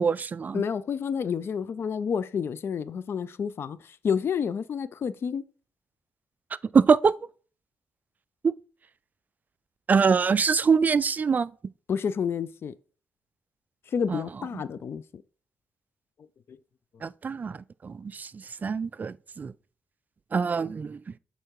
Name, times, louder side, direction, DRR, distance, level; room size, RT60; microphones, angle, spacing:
voice 1, 0.0-0.6 6.7-7.1 8.4-8.5 9.9-11.5 14.1-14.2 17.0-17.6 17.8-19.5 20.3-21.0, right 5 dB, 35° right, 0.3 m, -24 dB
voice 2, 0.5-5.4 11.9-12.7 13.9-15.2 16.5-16.6, left 7 dB, 55° left, 0.4 m, -29 dB
6.5 x 4.6 x 4.6 m
cardioid pair, 85°, 5 cm